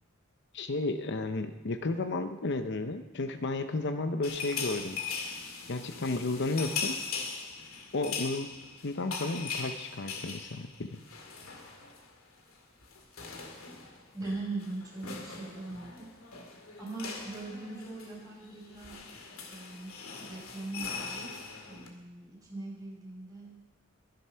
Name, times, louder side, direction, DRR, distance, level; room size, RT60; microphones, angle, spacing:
voice 1, 0.5-5.0 5.7-7.0 7.9-8.5 8.8-11.0, left 2 dB, 55° left, 8 dB, 0.8 m, -33 dB
sound 1, 4.2-12.1 12.4-12.6 12.8-21.9, left 5 dB, 90° left, 2.3 m, -40 dB
voice 2, 14.1-16.1 16.8-19.0 19.5-21.3 21.6-23.5, right 2 dB, 20° right, -5 dB, 5.6 m, -41 dB
22.0 x 8.0 x 5.7 m, 1.0 s
head